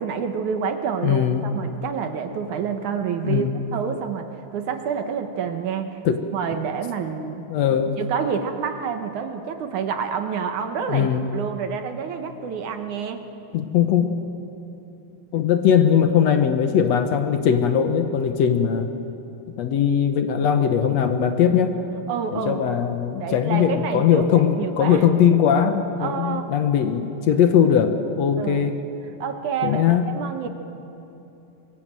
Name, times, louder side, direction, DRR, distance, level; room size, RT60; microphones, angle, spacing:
voice 1, 0.0-4.3 4.5-6.0 6.3-7.4 8.0-13.2 22.1-22.6 23.2-25.0 26.0-26.5 28.4-28.7 29.2-30.5, right 7 dB, 65° right, 6 dB, 2.3 m, -28 dB
voice 2, 1.0-1.5 3.2-3.6 6.0-6.3 7.5-8.0 10.9-11.2 13.5-14.2 15.3-18.9 19.6-21.8 22.3-28.8 29.6-30.1, left 8 dB, 70° left, 7 dB, 1.7 m, -20 dB
25.5 x 23.5 x 7.6 m, 2.9 s
omnidirectional pair, 4.2 m